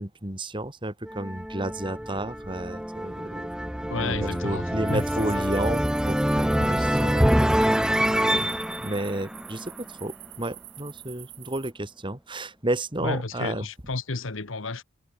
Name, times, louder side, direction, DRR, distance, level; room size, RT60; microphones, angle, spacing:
voice 1, 0.0-3.5 3.8-7.3 7.6-7.8 8.3-8.5 8.8-13.6, right 1 dB, 25° right, 2.9 m, -32 dB
sound 1, 1.1-10.1, equal, 5° right, 0.8 m, -26 dB
voice 2, 3.9-5.4 6.6-6.8 13.0-14.8, left 3 dB, 70° left, 1.5 m, -32 dB
sound 2, 4.9-11.7, right 15 dB, 60° right, 5.2 m, -46 dB
head